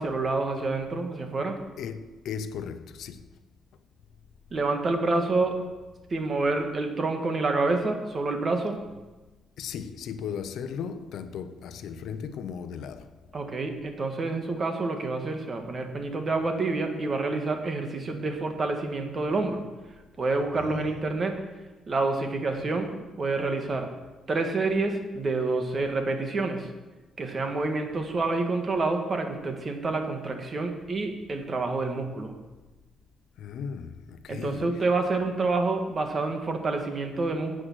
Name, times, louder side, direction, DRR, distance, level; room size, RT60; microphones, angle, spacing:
voice 1, 0.0-1.6 4.5-5.6 6.1-8.8 13.3-19.6 20.2-21.4 21.9-23.9 24.3-26.7 27.2-32.3 34.3-37.6, right 3 dB, 40° right, 1.6 m, -28 dB
voice 2, 1.8-3.3 9.6-13.1 20.5-20.9 33.4-34.8, left 7 dB, 75° left, 0.7 m, -36 dB
10.0 x 8.0 x 6.3 m
cardioid pair, 90°, 0 cm